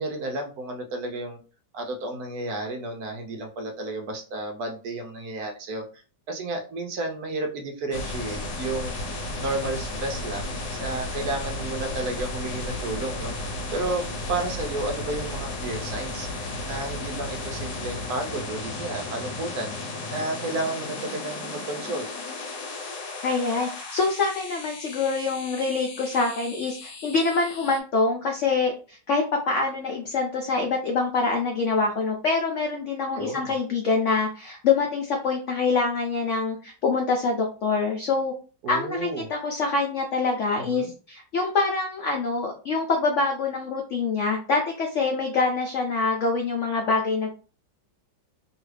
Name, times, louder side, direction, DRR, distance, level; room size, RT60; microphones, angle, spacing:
voice 1, 0.0-1.4 1.7-6.0 6.3-9.0 9.4-16.3 16.7-19.8 20.1-22.1 33.1-33.5 38.6-39.3 40.6-40.9, right 2 dB, 70° right, 3 dB, 1.0 m, -32 dB
sound 1, 7.9-27.8, left 2 dB, 65° left, 1.2 m, -34 dB
voice 2, 23.2-38.3 38.7-47.3, left 4 dB, 90° left, 2 dB, 0.6 m, -25 dB
3.0 x 2.4 x 3.2 m, 0.36 s
omnidirectional pair, 1.9 m